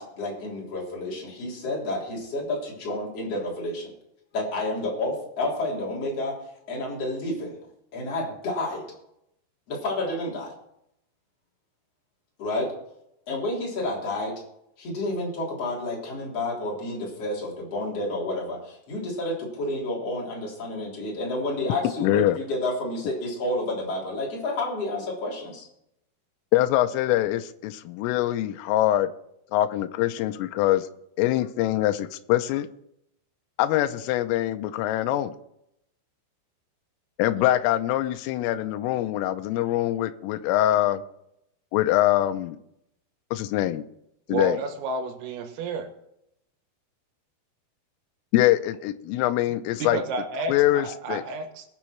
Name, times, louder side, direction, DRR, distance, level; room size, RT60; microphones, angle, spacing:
voice 1, 0.0-3.9 4.3-6.4 6.7-7.6 7.9-8.9 9.7-10.5 12.4-12.7 13.3-14.3 14.8-25.7, left 2 dB, 35° left, -3 dB, 4.0 m, -30 dB
voice 2, 22.0-22.4 26.5-29.1 29.5-30.9 31.2-32.7 33.6-35.3 37.2-41.0 41.7-42.6 43.3-43.9 44.3-44.6 48.3-50.0 50.5-51.2, left 14 dB, 85° left, 9 dB, 3.2 m, -23 dB
voice 3, 44.3-45.9 49.8-51.6, right 4 dB, 80° right, 5 dB, 4.2 m, -31 dB
21.5 x 7.2 x 4.5 m, 0.78 s
omnidirectional pair, 5.9 m